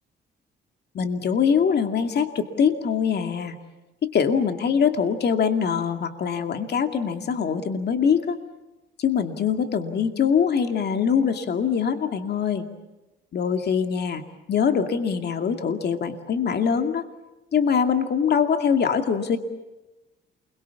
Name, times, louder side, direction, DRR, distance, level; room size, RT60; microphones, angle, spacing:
voice 1, 0.9-3.6 4.0-8.4 9.0-12.7 13.3-14.2 14.5-17.0 17.5-19.4, left 7 dB, 55° left, 6 dB, 2.3 m, -23 dB
28.5 x 22.5 x 7.1 m, 1.1 s
cardioid pair, 90°, 20 cm